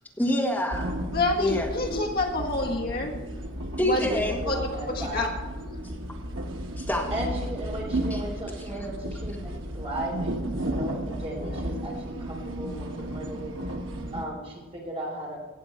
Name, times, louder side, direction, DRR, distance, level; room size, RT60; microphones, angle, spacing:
voice 1, 0.2-1.0 1.4-1.7 3.8-4.4 6.8-7.1 8.1-8.2, left 1 dB, 10° left, -1 dB, 1.7 m, -26 dB
sound 1, 0.7-14.3, right 1 dB, 90° right, 1.2 m, -33 dB
voice 2, 1.1-3.1 3.8-4.0 4.4-4.6 4.9-5.3, left 2 dB, 50° left, 0 dB, 1.5 m, -27 dB
voice 3, 4.0-5.3 7.1-13.5 14.1-15.4, right 1 dB, 30° right, -2 dB, 3.6 m, -36 dB
17.5 x 7.1 x 4.4 m, 1.2 s
head